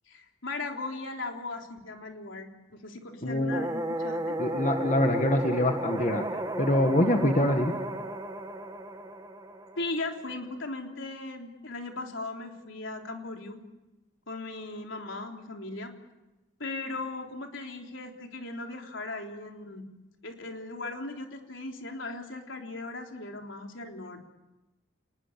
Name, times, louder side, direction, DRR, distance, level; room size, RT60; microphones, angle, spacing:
voice 1, 0.1-4.4 9.8-13.6 14.3-15.9 16.6-19.8 20.2-24.2, left 2 dB, 75° left, 2 dB, 3.5 m, -38 dB
voice 2, 3.2-3.5 4.4-6.3 6.6-7.7, left 1 dB, 35° left, 5 dB, 1.7 m, -24 dB
sound 1, 3.5-10.5, right 1 dB, 20° right, 1.6 m, -34 dB
28.0 x 20.5 x 8.6 m, 1.0 s
head